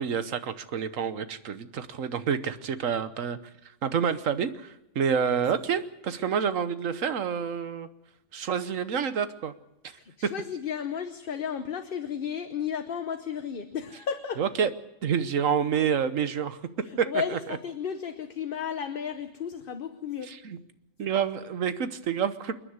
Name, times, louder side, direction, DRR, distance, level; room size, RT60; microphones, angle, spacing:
voice 1, 0.0-3.4 3.8-7.9 8.3-9.5 10.2-10.3 14.4-14.7 15.0-16.6 17.0-17.6 20.2-20.6 21.0-22.5, right 7 dB, 80° right, 12 dB, 1.4 m, -28 dB
voice 2, 9.9-14.4 16.9-20.3, left 7 dB, 45° left, 8 dB, 1.0 m, -33 dB
28.5 x 9.8 x 9.5 m, 0.92 s
omnidirectional pair, 1.3 m